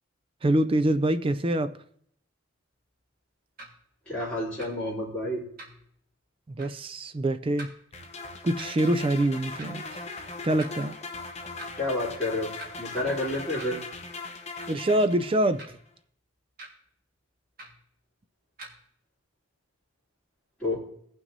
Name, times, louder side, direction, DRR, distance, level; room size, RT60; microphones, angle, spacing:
voice 1, 0.4-1.7 6.6-7.7 8.4-9.8 10.4-10.9 14.7-15.6, right 1 dB, 25° right, 0.3 m, -25 dB
sound 1, 3.6-3.7 4.6-4.7 5.6-5.9 6.6-6.8 7.6-7.7 8.6-8.7 9.6-9.7 10.6-10.7 11.6-11.8 12.6-12.7 13.6-13.8 14.6-14.8 15.6-15.9 16.6-16.7 17.6-17.8 18.6-18.8, right 2 dB, 45° right, 1.7 m, -44 dB
voice 2, 4.1-5.4 11.7-12.5 12.8-13.8 20.6-20.7, left 1 dB, 5° left, 3.3 m, -29 dB
sound 2, 7.9-15.7, left 3 dB, 30° left, 0.8 m, -39 dB
18.0 x 6.0 x 2.7 m
head